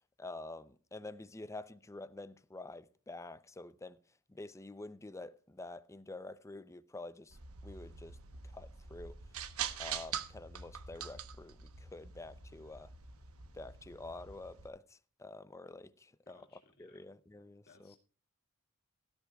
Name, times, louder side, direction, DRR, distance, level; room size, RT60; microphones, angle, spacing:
voice 1, 0.0-4.0 4.3-8.2 8.5-9.2 9.8-12.9 13.5-18.0, left 2 dB, 15° left, 0.6 m, -48 dB
sound 1, 7.3-14.7, right 8 dB, 70° right, 1.1 m, -44 dB
voice 2, 16.3-17.1 17.7-18.0, left 4 dB, 50° left, 2.2 m, -64 dB
17.0 x 13.5 x 2.3 m
head